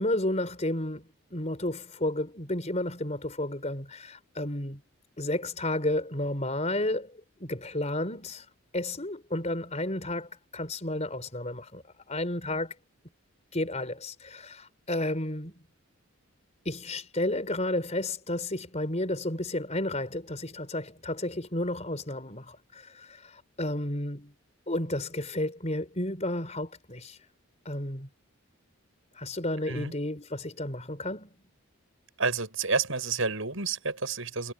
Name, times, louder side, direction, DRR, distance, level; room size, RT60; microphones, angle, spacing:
voice 1, 0.0-4.8 5.2-7.1 7.4-8.5 8.7-11.8 12.1-12.7 13.5-15.5 16.6-24.3 24.7-27.2 27.6-28.1 29.2-31.3, left 1 dB, 30° left, 4.7 m, -32 dB
voice 2, 32.2-34.5, right 4 dB, 65° right, 7.4 m, -29 dB
head